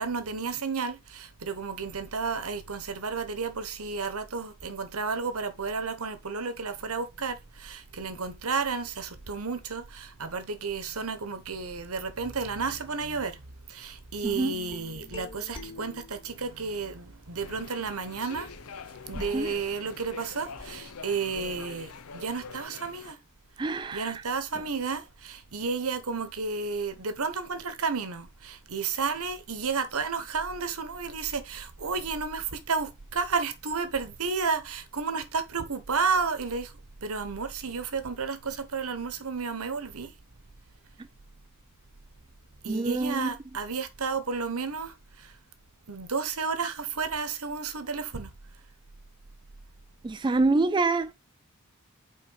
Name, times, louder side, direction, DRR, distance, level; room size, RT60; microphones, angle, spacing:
voice 1, 0.0-13.4 13.7-18.5 19.1-23.2 23.9-36.7 37.0-40.1 42.6-45.4 45.9-48.3, right 5 dB, 75° right, 1.1 m, -32 dB
sound 1, 14.2-16.6 17.4-22.6, left 2 dB, 25° left, 2.3 m, -46 dB
voice 2, 14.2-14.5 19.3-19.5 23.6-24.1 42.7-43.3 50.0-51.1, right 3 dB, 20° right, 0.3 m, -26 dB
sound 2, 17.4-23.1, left 5 dB, 75° left, 0.7 m, -44 dB
5.5 x 4.4 x 5.5 m
head